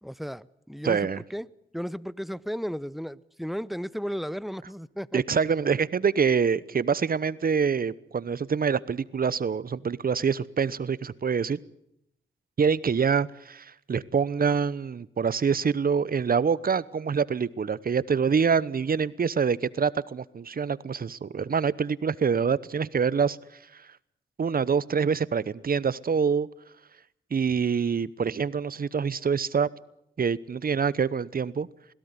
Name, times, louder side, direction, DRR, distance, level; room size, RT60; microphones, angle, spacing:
voice 1, 0.0-1.0 1.3-1.5 1.7-5.2, equal, ahead, 0.8 m, -34 dB
voice 2, 0.8-1.2 5.1-11.6 12.6-23.4 24.4-26.5 27.3-29.7 30.2-31.7, right 6 dB, 50° right, 0.9 m, -25 dB
21.5 x 16.5 x 9.6 m
cardioid pair, 55°, 20 cm